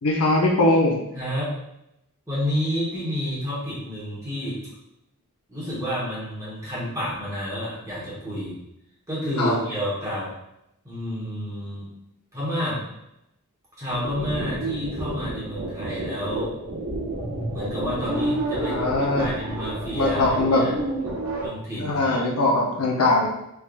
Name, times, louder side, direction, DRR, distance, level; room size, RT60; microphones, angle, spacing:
voice 1, 0.0-1.0 9.4-9.6 18.5-19.3 19.9-20.6 21.8-23.3, left 2 dB, 80° left, -1 dB, 0.7 m, -21 dB
voice 2, 1.1-1.5 2.3-4.6 5.5-8.6 9.1-10.3 10.8-11.9 12.3-12.8 13.8-16.5 17.5-20.7 21.4-22.3, equal, 15° right, -9 dB, 1.4 m, -30 dB
sound 1, 13.9-21.5, right 1 dB, 90° right, 1.1 m, -30 dB
3.5 x 3.4 x 2.6 m, 0.85 s
head